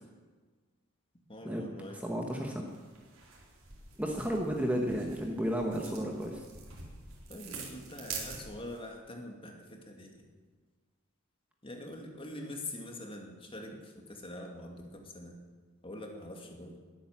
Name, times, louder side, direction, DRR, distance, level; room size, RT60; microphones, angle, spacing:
voice 1, 1.3-2.0 7.3-10.2 11.6-15.4 15.8-16.8, left 1 dB, 25° left, 2 dB, 2.4 m, -44 dB
voice 2, 1.9-2.6 4.0-6.4, equal, 5° right, 1 dB, 1.3 m, -32 dB
sound 1, 2.7-8.8, right 5 dB, 80° right, 4.3 m, -46 dB
21.0 x 9.1 x 7.4 m, 1.4 s
head